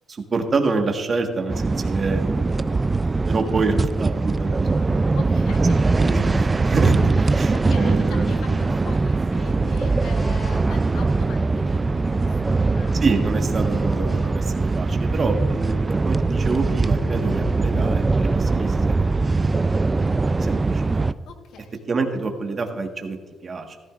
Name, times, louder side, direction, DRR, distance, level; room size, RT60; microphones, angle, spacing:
voice 1, 0.1-2.8 3.2-4.7 5.1-5.2 5.9-7.1 7.4-8.5 13.0-19.4 19.7-21.1 21.9-23.8, right 4 dB, 40° right, 4 dB, 1.4 m, -27 dB
sound 1, 1.5-21.1, right 3 dB, 25° right, 0.3 m, -21 dB
voice 2, 5.1-6.0 7.2-12.9 21.3-21.9, left 6 dB, 80° left, 5 dB, 1.3 m, -41 dB
sound 2, 10.1-18.5, equal, 25° left, 3.2 m, -39 dB
14.5 x 13.5 x 2.5 m, 1.4 s
cardioid pair, 90°, 0 cm